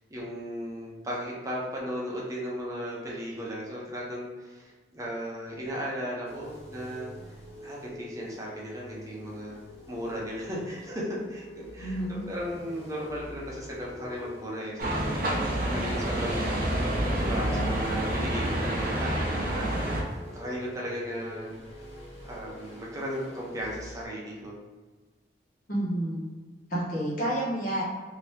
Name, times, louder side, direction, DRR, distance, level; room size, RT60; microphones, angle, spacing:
voice 1, 0.1-7.1 7.6-9.6 9.9-15.1 15.7-16.9 17.2-20.0 20.3-21.5 22.2-24.6, equal, 20° right, -5 dB, 0.8 m, -36 dB
sound 1, 6.2-24.1, equal, 30° left, 0.9 m, -45 dB
voice 2, 11.8-12.2 25.7-26.3 26.7-27.8, right 1 dB, 50° left, -7 dB, 1.3 m, -29 dB
sound 2, 14.8-20.0, right 1 dB, 50° right, 0.8 m, -28 dB
2.9 x 2.9 x 3.3 m, 1.4 s
head